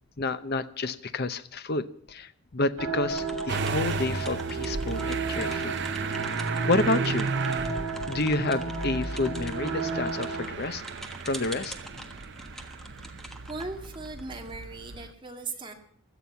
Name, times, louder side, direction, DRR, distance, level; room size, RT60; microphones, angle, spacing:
voice 1, 0.2-5.8 6.4-7.3 8.1-10.8 11.2-11.7, left 2 dB, 45° left, 13 dB, 0.8 m, -29 dB
sound 1, 2.8-10.4, right 4 dB, 80° right, 2.9 m, -33 dB
sound 2, 3.1-14.6, equal, ahead, 1.4 m, -45 dB
Motor vehicle (road) / Engine starting, 3.5-15.1, right 4 dB, 50° right, 0.8 m, -34 dB
voice 2, 13.5-15.7, right 3 dB, 20° right, 2 dB, 2.0 m, -38 dB
16.5 x 12.0 x 5.7 m, 0.65 s
head